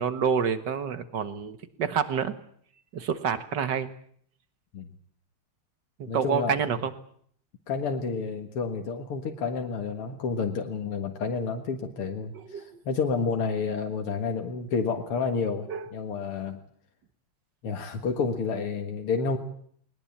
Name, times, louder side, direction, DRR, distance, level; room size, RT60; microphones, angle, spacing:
voice 1, 0.0-2.3 2.9-3.9 6.0-6.9 12.5-12.7 15.7-15.9, right 7 dB, 55° right, 11 dB, 2.0 m, -28 dB
voice 2, 6.1-6.5 7.7-16.6 17.6-19.4, left 5 dB, 85° left, 5 dB, 2.6 m, -30 dB
20.5 x 20.5 x 8.8 m, 0.62 s
omnidirectional pair, 2.4 m